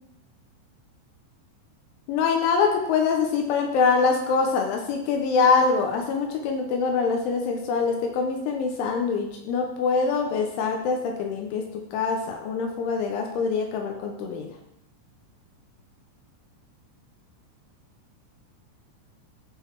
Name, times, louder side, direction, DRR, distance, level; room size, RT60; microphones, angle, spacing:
voice 1, 2.1-11.6 11.9-14.5, left 5 dB, 80° left, 3 dB, 3.0 m, -24 dB
11.5 x 3.9 x 4.6 m, 0.81 s
omnidirectional pair, 5.9 m